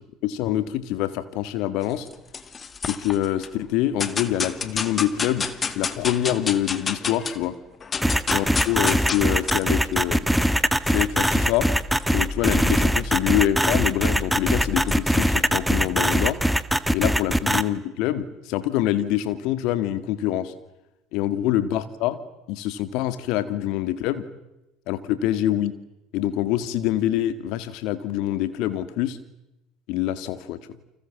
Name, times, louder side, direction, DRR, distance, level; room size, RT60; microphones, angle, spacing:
voice 1, 0.2-2.1 2.8-7.5 8.3-10.3 10.9-11.7 12.1-16.4 16.9-20.5 21.1-22.2 22.5-24.3 24.9-25.7 26.1-29.2 29.9-30.6, left 12 dB, 60° left, 12 dB, 2.5 m, -25 dB
sound 1, 1.8-3.5 4.0-7.4 7.7-16.3, left 4 dB, 30° left, 2.1 m, -32 dB
sound 2, 8.0-17.6, equal, ahead, 1.6 m, -21 dB
30.0 x 25.0 x 7.6 m, 0.94 s
hypercardioid pair, 70°, 0 cm